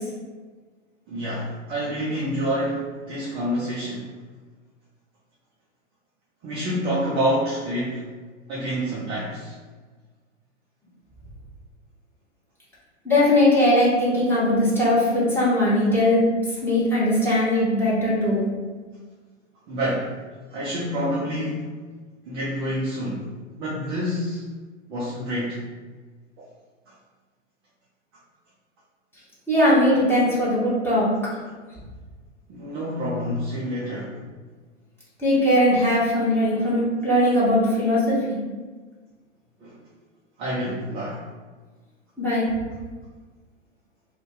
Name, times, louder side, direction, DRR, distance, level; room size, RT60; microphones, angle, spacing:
voice 1, 1.1-4.0 6.4-8.1 8.5-9.5 19.7-20.1 20.5-21.7 22.2-23.2 23.6-24.4 24.9-25.6 32.5-34.2 39.6-39.8 40.4-41.2, equal, 15° right, -7 dB, 0.3 m, -27 dB
voice 2, 13.0-16.2 16.6-18.5 29.5-31.1 35.2-38.4 42.2-42.4, left 1 dB, 5° left, -9 dB, 0.9 m, -20 dB
2.5 x 2.2 x 3.6 m, 1.4 s
figure-of-eight pair, 95°, 36 cm